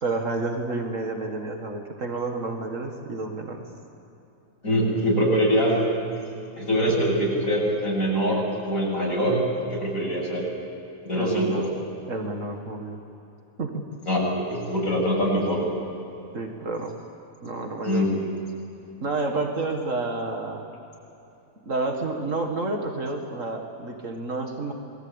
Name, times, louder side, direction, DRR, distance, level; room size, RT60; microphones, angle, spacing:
voice 1, 0.0-3.7 11.1-11.7 12.1-13.0 13.6-13.8 16.3-17.0 17.4-18.1 19.0-20.7 21.6-24.7, right 3 dB, 60° right, 2 dB, 2.2 m, -30 dB
voice 2, 4.6-5.8 6.6-9.4 9.7-10.5 11.0-11.6 14.0-15.6 17.8-18.2, equal, 80° left, -3 dB, 8.0 m, -23 dB
27.0 x 21.0 x 8.9 m, 2.9 s
omnidirectional pair, 1.5 m